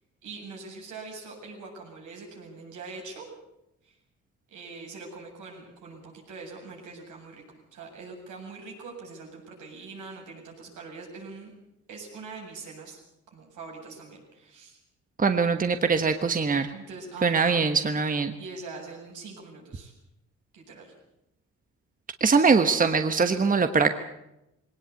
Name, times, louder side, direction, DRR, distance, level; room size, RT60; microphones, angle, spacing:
voice 1, 0.2-3.3 3.8-4.0 4.5-7.4 7.7-11.5 11.9-13.0 13.3-14.8 16.7-17.6 18.4-19.9 20.5-20.9, right 4 dB, 80° right, 0 dB, 7.9 m, -43 dB
voice 2, 15.2-16.7 17.2-18.3 22.2-23.9, right 5 dB, 25° right, 8 dB, 1.3 m, -22 dB
20.5 x 18.5 x 8.3 m, 0.87 s
cardioid pair, 90°, 30 cm